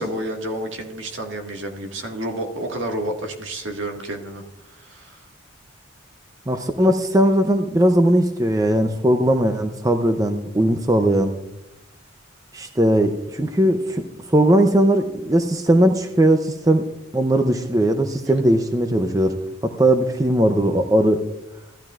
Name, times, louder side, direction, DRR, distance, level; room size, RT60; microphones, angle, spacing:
voice 1, 0.0-4.4 4.7-5.2, right 1 dB, 65° right, 2 dB, 1.7 m, -30 dB
voice 2, 6.5-11.3 12.5-16.8 17.1-19.3 19.6-21.2, right 1 dB, 15° right, 6 dB, 0.5 m, -19 dB
15.0 x 11.5 x 2.4 m, 0.90 s
head